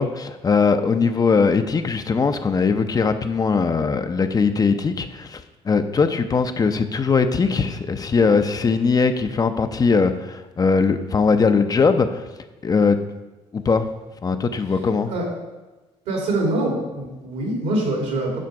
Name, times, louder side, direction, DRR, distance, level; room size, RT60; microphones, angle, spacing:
voice 1, 0.0-12.3 12.6-13.0 13.5-13.9 14.2-15.1, left 5 dB, 30° left, 9 dB, 0.5 m, -20 dB
voice 2, 16.1-18.4, right 1 dB, 85° right, -1 dB, 2.5 m, -24 dB
7.6 x 5.1 x 4.6 m, 1.1 s
supercardioid pair, 80°, 12 cm